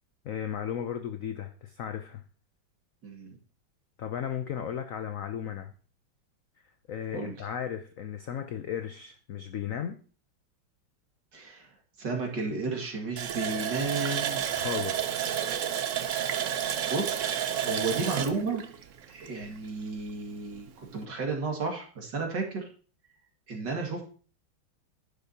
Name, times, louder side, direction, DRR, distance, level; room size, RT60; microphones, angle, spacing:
voice 1, 0.2-2.2 4.0-5.7 6.9-10.0 14.5-15.2, left 9 dB, 75° left, 8 dB, 0.7 m, -35 dB
voice 2, 3.0-3.4 7.1-7.4 11.3-11.7 12.0-14.5 15.3-15.4 16.8-18.6 19.1-22.6 23.5-24.0, right 3 dB, 60° right, 1 dB, 2.7 m, -33 dB
Water tap faucet, 13.2-19.7 20.0-20.1 20.5-20.7, right 9 dB, 75° right, 0.7 m, -31 dB
11.0 x 10.5 x 2.8 m, 0.40 s
omnidirectional pair, 2.2 m